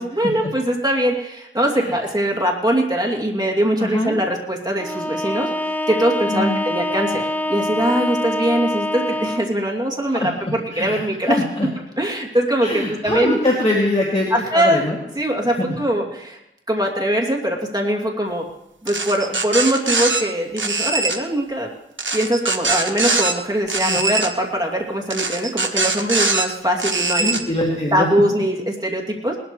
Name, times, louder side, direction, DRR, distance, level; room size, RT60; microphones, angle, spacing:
voice 1, 0.0-5.5 5.9-11.4 12.0-13.3 14.3-14.8 15.1-16.4 16.7-18.4 18.8-21.7 22.1-27.3 27.9-29.4, right 1 dB, 20° right, -1 dB, 2.7 m, -22 dB
voice 2, 3.8-4.2 6.3-6.6 7.8-7.9 10.1-11.7 12.6-15.0 15.6-15.7 23.8-24.0 27.1-28.1, left 1 dB, 30° left, -3 dB, 2.5 m, -23 dB
Bowed string instrument, 4.8-9.6, left 1 dB, 10° left, 0.9 m, -25 dB
sound 1, 18.9-20.2 20.6-21.2 22.0-23.3 23.7-24.3 25.1-26.5 26.8-27.4, right 3 dB, 65° right, 1.1 m, -22 dB
20.0 x 13.0 x 3.2 m, 0.89 s
wide cardioid pair, 45°, 21 cm